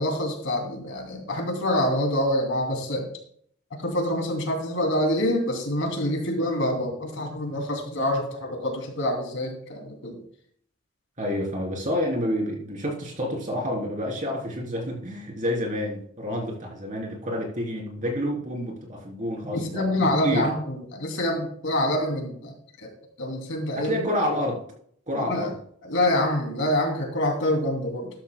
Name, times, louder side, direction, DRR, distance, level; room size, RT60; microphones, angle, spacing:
voice 1, 0.0-3.0 3.8-10.2 19.5-22.5 22.8-22.9 23.2-23.9 25.2-25.5 25.8-28.1, left 1 dB, 70° left, 2 dB, 2.9 m, -26 dB
voice 2, 11.2-20.5 23.8-24.6 25.1-25.5, equal, 40° right, -1 dB, 3.6 m, -29 dB
13.0 x 13.0 x 2.3 m, 0.62 s
head